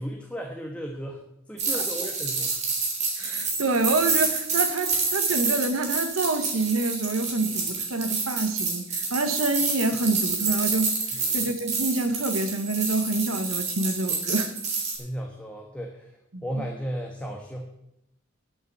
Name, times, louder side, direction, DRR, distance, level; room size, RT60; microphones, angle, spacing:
voice 1, 0.0-2.6 11.1-11.4 15.0-16.1 16.4-17.6, equal, 5° left, 0 dB, 1.3 m, -35 dB
sound 1, 1.6-15.0, right 4 dB, 35° right, 3.4 m, -28 dB
voice 2, 3.2-11.0 11.3-14.6 16.3-16.6, right 2 dB, 80° right, 7 dB, 1.1 m, -27 dB
11.0 x 8.4 x 8.2 m, 0.81 s
head